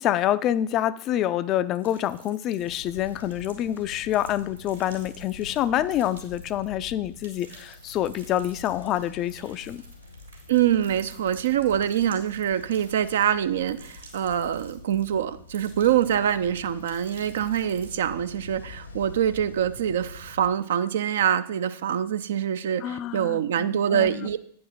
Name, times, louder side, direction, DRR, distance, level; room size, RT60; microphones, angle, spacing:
voice 1, 0.0-9.8 22.8-24.3, left 12 dB, 35° left, 16 dB, 0.4 m, -27 dB
sound 1, 1.7-6.8 7.0-15.1 15.5-16.4 16.7-17.9, right 4 dB, 80° right, 2.9 m, -52 dB
Ocean, 2.6-20.5, left 3 dB, 80° left, 1.1 m, -45 dB
voice 2, 10.5-24.4, right 9 dB, 60° right, 13 dB, 0.4 m, -25 dB
9.2 x 5.2 x 5.4 m, 0.63 s
figure-of-eight pair, 90°, 0 cm